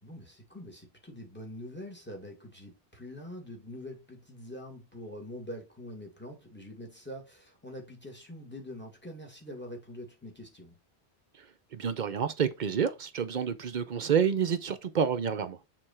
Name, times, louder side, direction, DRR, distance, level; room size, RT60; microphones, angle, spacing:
voice 1, 0.0-10.8, left 1 dB, 10° left, 2.2 m, -44 dB
voice 2, 11.7-15.6, right 7 dB, 55° right, 0.6 m, -28 dB
6.7 x 3.8 x 4.3 m
omnidirectional pair, 1.1 m